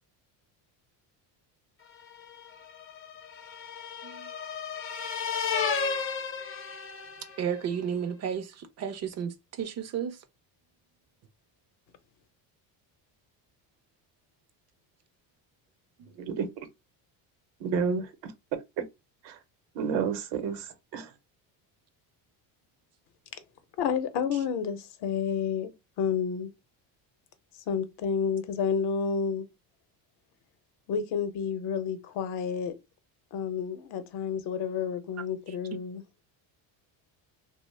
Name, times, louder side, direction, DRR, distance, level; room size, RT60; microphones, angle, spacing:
Doppler siren, 2.1-7.5, left 6 dB, 30° left, 0.5 m, -33 dB
voice 1, 7.4-10.2 16.0-16.1, right 8 dB, 40° right, 0.4 m, -33 dB
voice 2, 16.2-16.7 17.6-18.3 18.8-18.9 19.2-19.4 19.7-21.1, right 6 dB, 75° right, 0.8 m, -31 dB
voice 3, 23.8-25.7 26.0-26.5 27.7-29.5 30.9-32.7 33.3-36.0, left 7 dB, 65° left, 0.7 m, -30 dB
2.7 x 2.0 x 3.1 m
cardioid pair, 130°, 43 cm